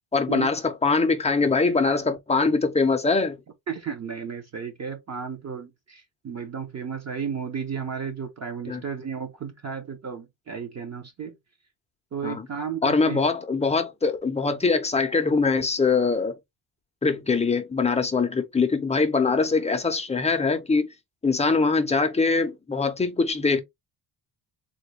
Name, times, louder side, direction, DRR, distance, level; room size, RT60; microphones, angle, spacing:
voice 1, 0.1-3.4 8.7-8.8 12.2-12.5 12.8-16.4 17.0-20.9 21.2-23.6, left 4 dB, 15° left, 0.5 m, -23 dB
voice 2, 3.7-11.4 12.1-13.2, right 6 dB, 35° right, 0.7 m, -33 dB
3.8 x 2.2 x 3.2 m
cardioid pair, 135°, 48 cm